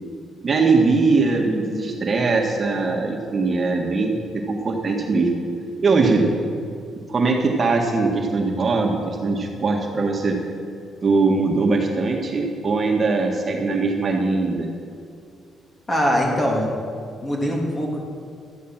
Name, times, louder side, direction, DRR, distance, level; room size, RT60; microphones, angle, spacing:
voice 1, 0.4-5.3 5.8-6.2 7.1-10.4 11.0-14.7, right 3 dB, 35° right, 1 dB, 1.7 m, -21 dB
voice 2, 15.9-16.7 17.2-18.0, equal, 25° left, -1 dB, 3.0 m, -22 dB
13.0 x 9.5 x 7.4 m, 2.4 s
cardioid pair, 90°, 0 cm